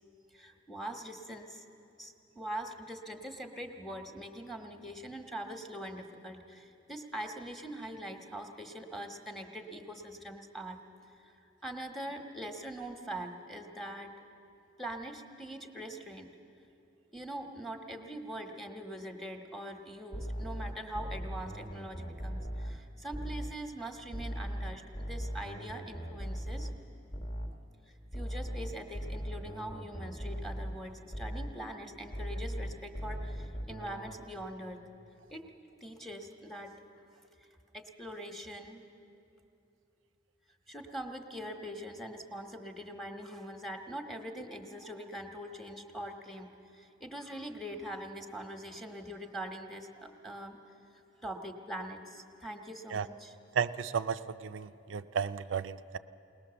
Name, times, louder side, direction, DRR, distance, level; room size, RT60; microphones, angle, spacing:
voice 1, 0.3-1.6 2.0-10.8 11.2-14.1 14.8-16.3 17.1-26.7 27.9-34.9 35.3-35.5 35.8-36.7 37.7-38.9 40.7-50.6 51.2-53.3, right 1 dB, ahead, 4 dB, 1.1 m, -43 dB
sound 1, 20.1-23.6 24.1-27.7 28.1-31.6 32.1-34.2, equal, 30° left, 1.1 m, -39 dB
voice 2, 53.6-56.0, right 7 dB, 90° right, 10 dB, 0.5 m, -33 dB
21.0 x 19.5 x 6.9 m, 2.8 s
head